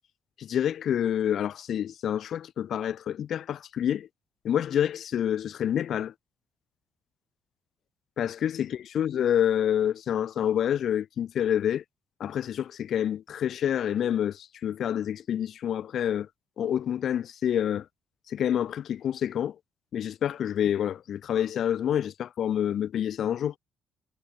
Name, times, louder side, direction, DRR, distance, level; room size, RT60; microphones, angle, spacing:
voice 1, 0.4-4.1 4.4-6.1 8.2-11.8 12.2-16.3 16.6-17.9 18.3-19.6 19.9-23.5, left 9 dB, 60° left, 1.9 m, -27 dB
cardioid pair, 125°, 0 cm